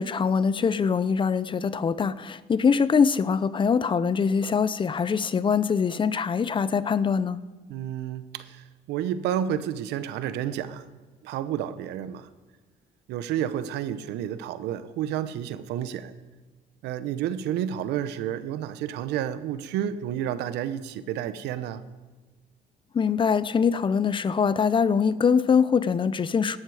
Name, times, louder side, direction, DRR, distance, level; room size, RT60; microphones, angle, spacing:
voice 1, 0.0-7.4 22.9-26.6, left 6 dB, 30° left, 17 dB, 0.6 m, -23 dB
voice 2, 7.7-10.8 11.2-12.3 13.1-16.1 16.8-21.8, right 10 dB, 85° right, 13 dB, 0.9 m, -30 dB
17.0 x 12.5 x 4.9 m, 1.3 s
cardioid pair, 110°, 17 cm